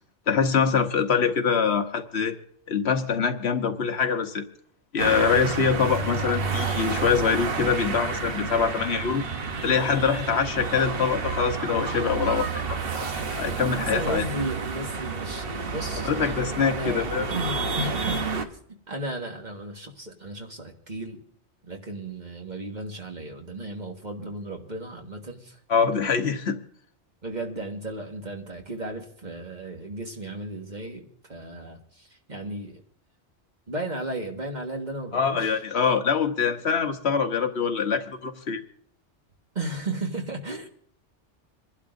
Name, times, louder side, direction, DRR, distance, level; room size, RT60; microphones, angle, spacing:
voice 1, 0.3-2.4 2.7-4.4 4.9-9.2 9.6-14.2 16.0-17.3 25.7-26.6 35.1-38.6, left 6 dB, 65° left, 7 dB, 1.2 m, -24 dB
sound 1, 5.0-18.4, right 4 dB, 55° right, 1.2 m, -30 dB
voice 2, 13.9-18.6 18.9-21.2 21.6-25.6 27.2-32.8 33.7-35.6 39.6-40.7, right 2 dB, 40° right, 2 dB, 1.7 m, -35 dB
27.0 x 11.5 x 2.6 m, 0.64 s
omnidirectional pair, 1.2 m